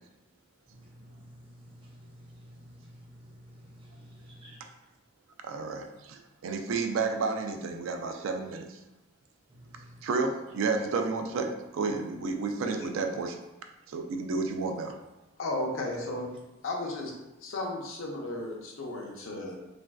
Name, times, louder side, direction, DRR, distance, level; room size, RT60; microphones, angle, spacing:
voice 1, 0.8-1.3 1.8-2.0 2.4-2.7 3.2-4.6 9.7-9.8, equal, 25° right, -3 dB, 0.5 m, -51 dB
voice 2, 5.4-8.8 10.0-13.4 13.9-14.9, right 4 dB, 80° right, 5 dB, 0.3 m, -31 dB
voice 3, 15.4-16.3 16.6-17.1 17.4-19.6, left 2 dB, 80° left, -1 dB, 0.6 m, -34 dB
3.1 x 2.5 x 2.2 m, 0.99 s
head